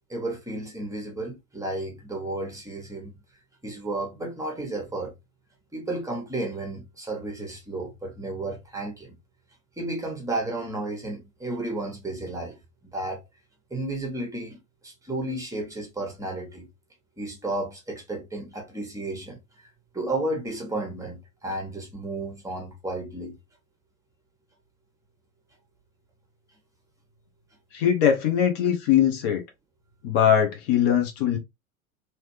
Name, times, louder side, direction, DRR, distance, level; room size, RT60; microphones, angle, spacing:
voice 1, 0.1-3.1 3.6-5.1 5.7-9.1 9.8-13.2 13.7-16.7 17.2-19.4 19.9-23.4, right 2 dB, 5° right, 1.3 m, -33 dB
voice 2, 27.7-29.4 30.0-31.4, left 9 dB, 45° left, 1.1 m, -21 dB
3.3 x 3.1 x 2.9 m
figure-of-eight pair, 90°, 43 cm